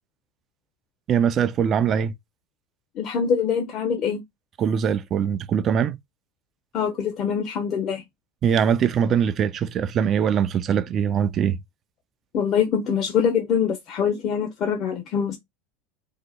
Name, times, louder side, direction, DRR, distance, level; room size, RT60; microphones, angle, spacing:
voice 1, 1.1-2.1 4.6-6.0 8.4-11.6, right 8 dB, 40° right, 0.4 m, -22 dB
voice 2, 3.0-4.2 6.7-8.0 12.3-15.4, left 7 dB, 45° left, 0.8 m, -24 dB
2.8 x 2.1 x 4.0 m
hypercardioid pair, 90°, 0 cm